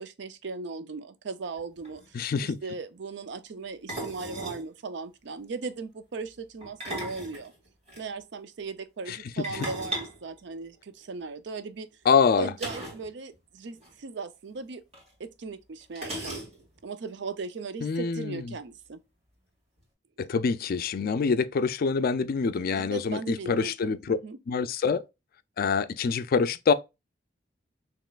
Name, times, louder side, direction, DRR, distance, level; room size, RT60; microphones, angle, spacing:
voice 1, 0.0-2.2 2.4-7.5 8.0-11.9 12.4-14.8 15.2-16.4 16.8-19.0 22.6-24.4, right 4 dB, 65° right, 0.5 m, -38 dB
sound 1, 1.6-1.7 1.8-2.1 3.9-4.7 6.6-8.0 9.4-11.1 12.6-13.1 13.3-13.4 13.8-13.9 14.9-15.0 16.0-16.8, right 1 dB, 35° right, 2.0 m, -37 dB
voice 2, 2.1-2.6 9.1-9.2 12.1-12.5 17.8-18.4 20.2-24.2 24.5-25.0 25.6-26.7, left 5 dB, 50° left, 0.4 m, -25 dB
5.2 x 3.0 x 2.3 m
head